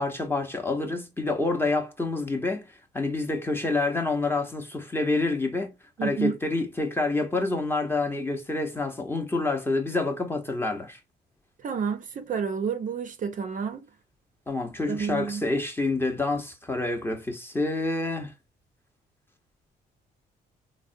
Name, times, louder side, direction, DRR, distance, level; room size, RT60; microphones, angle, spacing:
voice 1, 0.0-2.7 2.9-5.7 6.0-11.0 14.5-18.3, left 3 dB, 10° left, 0.7 m, -27 dB
voice 2, 6.0-6.4 11.6-13.9 14.9-15.5, right 6 dB, 45° right, 0.5 m, -29 dB
3.4 x 2.1 x 2.6 m
cardioid pair, 85°, 18 cm